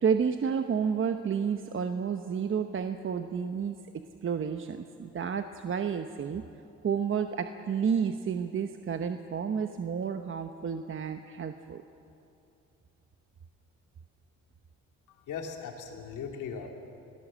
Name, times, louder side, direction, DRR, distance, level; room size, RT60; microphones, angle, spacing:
voice 1, 0.0-6.4 6.8-11.8, right 7 dB, 40° right, 7 dB, 1.0 m, -31 dB
voice 2, 15.1-16.7, left 6 dB, 85° left, 2 dB, 2.9 m, -39 dB
26.0 x 17.5 x 7.5 m, 2.7 s
cardioid pair, 90°, 30 cm